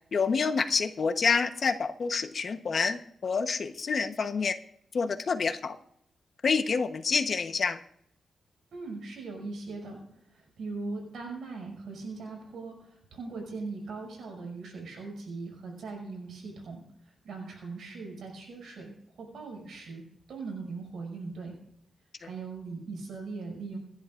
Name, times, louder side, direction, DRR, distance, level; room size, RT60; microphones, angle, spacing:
voice 1, 0.1-4.6 4.9-5.8 6.4-7.8, left 5 dB, 45° left, 8 dB, 1.0 m, -28 dB
voice 2, 8.7-21.6 22.2-23.8, right 3 dB, 70° right, 0 dB, 6.0 m, -40 dB
29.0 x 11.0 x 2.5 m, 0.71 s
wide cardioid pair, 160°, 0 cm